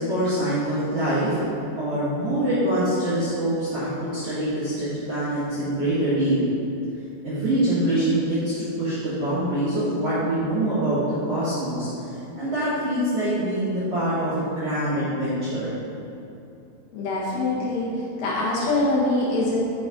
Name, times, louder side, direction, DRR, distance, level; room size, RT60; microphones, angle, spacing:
voice 1, 0.0-1.4 1.8-6.4 7.2-15.7, right 1 dB, 55° right, -12 dB, 1.8 m, -24 dB
voice 2, 16.9-19.6, left 2 dB, 70° left, -6 dB, 3.1 m, -24 dB
9.9 x 5.3 x 3.8 m, 2.8 s
omnidirectional pair, 5.0 m